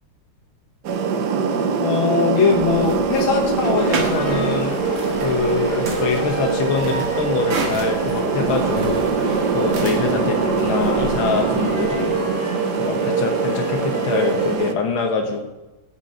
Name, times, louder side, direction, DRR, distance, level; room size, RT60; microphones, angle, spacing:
sound 1, 0.8-14.7, right 5 dB, 60° right, 1.2 m, -23 dB
voice 1, 1.8-4.8 5.2-9.2 9.5-12.2 12.7-15.5, left 5 dB, 70° left, 2 dB, 2.0 m, -23 dB
sound 2, 2.5-12.2, right 4 dB, 85° right, 2.4 m, -33 dB
sound 3, 3.8-14.5, left 1 dB, 40° left, 2.0 m, -31 dB
8.4 x 8.2 x 6.7 m, 1.1 s
omnidirectional pair, 2.4 m